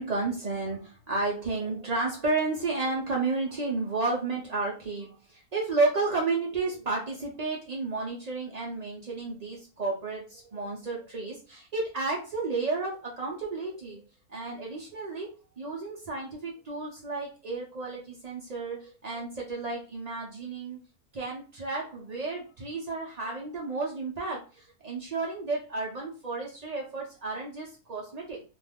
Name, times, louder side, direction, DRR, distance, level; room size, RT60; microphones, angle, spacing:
voice 1, 0.0-14.0 14.3-20.8 21.1-28.4, right 3 dB, 80° right, -2 dB, 0.3 m, -32 dB
2.6 x 2.4 x 3.4 m, 0.34 s
omnidirectional pair, 1.7 m